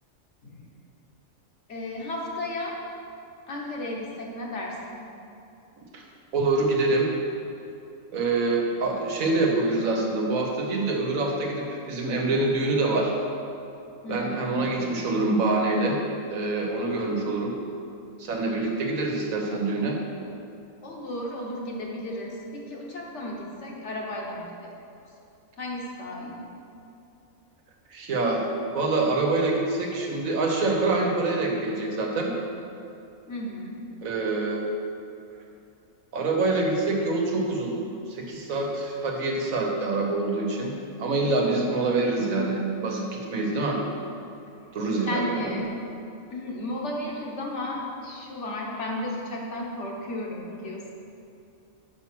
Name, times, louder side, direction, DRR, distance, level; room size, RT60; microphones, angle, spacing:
voice 1, 1.7-2.8 3.5-5.0 14.0-14.9 20.8-24.7 25.6-26.4 33.3-33.8 45.0-45.8 46.3-50.9, left 1 dB, 60° left, -2 dB, 1.4 m, -34 dB
voice 2, 6.3-7.1 8.1-13.1 14.1-16.0 16.3-17.5 18.2-20.0 27.9-32.3 34.0-34.6 36.1-37.7 38.1-43.8 44.7-45.5, right 2 dB, 85° right, 1 dB, 1.4 m, -25 dB
5.8 x 5.3 x 6.0 m, 2.7 s
omnidirectional pair, 1.4 m